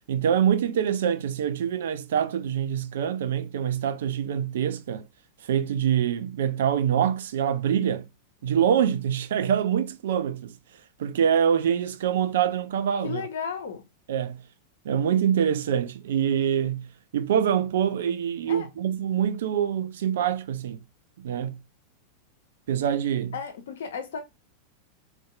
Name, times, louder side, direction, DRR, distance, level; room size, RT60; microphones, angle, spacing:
voice 1, 0.1-5.1 5.4-8.1 8.4-10.5 11.0-13.2 14.1-14.4 14.8-16.9 17.1-20.8 21.2-21.6 22.7-23.3, right 9 dB, 60° right, 0.3 m, -25 dB
voice 2, 13.0-13.8 18.5-18.7 23.3-24.2, left 6 dB, 60° left, 0.7 m, -33 dB
2.6 x 2.2 x 2.4 m
figure-of-eight pair, 90°, 0 cm